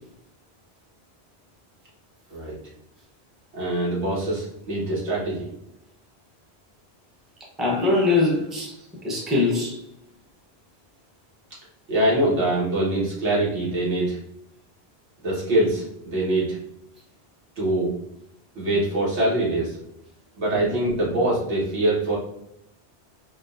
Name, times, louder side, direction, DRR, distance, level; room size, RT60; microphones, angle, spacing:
voice 1, 3.5-5.5 11.9-14.2 15.2-16.6 17.6-17.9 18.6-19.8 20.4-22.2, right 1 dB, 90° right, -7 dB, 1.6 m, -23 dB
voice 2, 7.6-8.7 9.0-9.8 20.6-20.7, left 3 dB, ahead, -3 dB, 0.6 m, -22 dB
3.7 x 2.4 x 2.5 m, 0.77 s
omnidirectional pair, 1.1 m